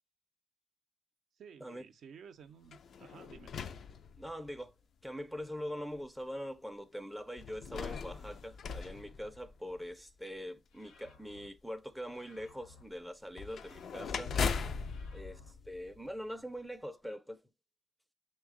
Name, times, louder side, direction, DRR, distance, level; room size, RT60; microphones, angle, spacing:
voice 1, 1.4-3.5, right 7 dB, 65° right, 0.5 m, -54 dB
sound 1, 2.6-4.7 5.4-5.5 7.4-9.9 13.3-16.4, left 5 dB, 60° left, 0.4 m, -39 dB
voice 2, 4.2-4.7 5.0-14.4 15.1-15.4 15.7-17.4, equal, ahead, 0.4 m, -43 dB
sound 2, 10.7-11.5 12.0-12.8 13.4-14.2 14.7-15.5, left 4 dB, 80° left, 0.9 m, -60 dB
6.0 x 2.2 x 3.6 m
cardioid pair, 90°, 0 cm